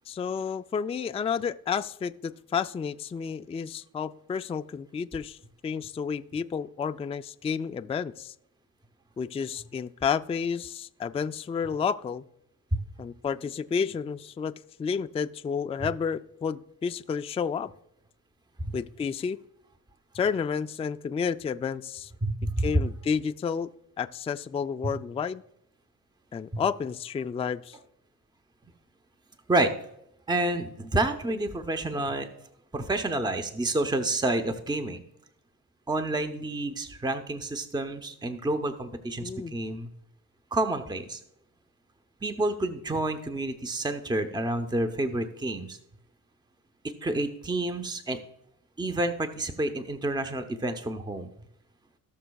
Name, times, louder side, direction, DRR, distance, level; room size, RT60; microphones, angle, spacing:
voice 1, 0.1-5.4 5.6-8.3 9.2-12.2 13.0-17.7 18.7-19.4 20.1-22.1 22.6-23.7 24.0-25.4 26.3-27.8 39.2-39.6, left 6 dB, 20° left, 10 dB, 0.3 m, -31 dB
voice 2, 22.2-22.9 24.8-24.9 26.5-26.6 29.5-29.7 30.3-32.3 32.7-35.0 35.9-39.9 40.5-41.2 42.2-45.8 47.0-48.2 48.8-51.3, right 2 dB, 10° right, 7 dB, 0.8 m, -29 dB
18.0 x 6.2 x 2.3 m, 0.76 s
cardioid pair, 80°, 36 cm